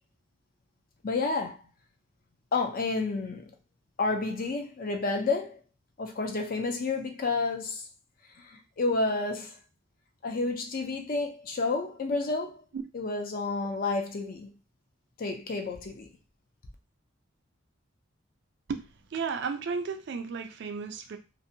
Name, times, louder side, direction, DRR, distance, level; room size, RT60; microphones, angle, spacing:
voice 1, 1.0-1.6 2.5-3.5 4.0-5.6 6.0-7.9 8.4-9.6 10.2-12.6 12.9-14.5 15.2-16.1, left 3 dB, 40° left, 0.4 m, -30 dB
voice 2, 18.7-21.2, right 5 dB, 55° right, 0.3 m, -34 dB
2.6 x 2.1 x 2.6 m
head